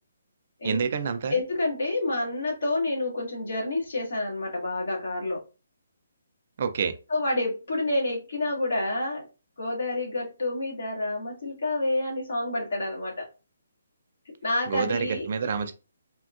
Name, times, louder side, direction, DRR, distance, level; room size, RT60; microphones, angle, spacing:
voice 1, 0.6-1.4 6.6-6.9 14.7-15.7, right 6 dB, 40° right, 0.3 m, -27 dB
voice 2, 1.3-5.4 7.1-9.2 9.6-13.3 14.4-15.6, left 2 dB, 60° left, 1.6 m, -28 dB
3.5 x 2.2 x 2.4 m
hypercardioid pair, 175°, 0 cm